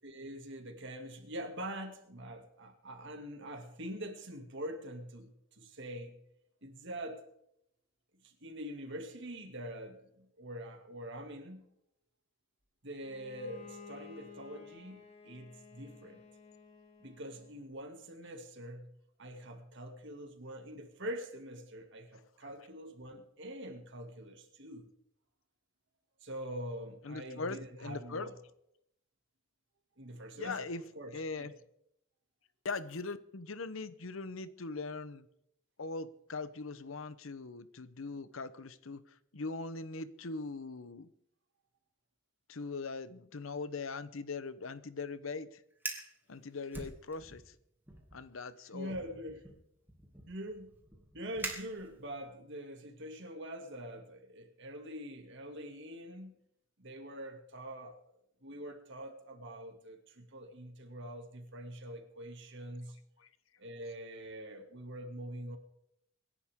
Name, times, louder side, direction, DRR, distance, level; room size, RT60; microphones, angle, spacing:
voice 1, 0.0-6.2 6.6-7.3 8.2-11.6 12.8-16.2 17.0-18.9 19.2-24.9 26.2-28.4 30.0-30.7 30.9-31.5 48.7-49.4 50.3-50.7 51.1-56.4 56.8-58.0 58.4-63.0 63.6-65.6, right 1 dB, 65° right, 4 dB, 2.5 m, -44 dB
Bowed string instrument, 13.0-17.7, left 5 dB, 35° left, 4.2 m, -54 dB
voice 2, 27.0-28.3 30.4-30.8 31.1-31.5 32.6-35.3 35.8-39.0 39.3-41.1 42.5-45.6 46.3-47.6 48.1-48.9 63.2-63.3, left 3 dB, 85° left, 14 dB, 0.9 m, -41 dB
Fire, 45.7-46.1 46.7-47.5 47.9-48.2 48.9-52.2, right 2 dB, 10° right, 2.4 m, -44 dB
25.0 x 11.0 x 3.7 m, 0.77 s
head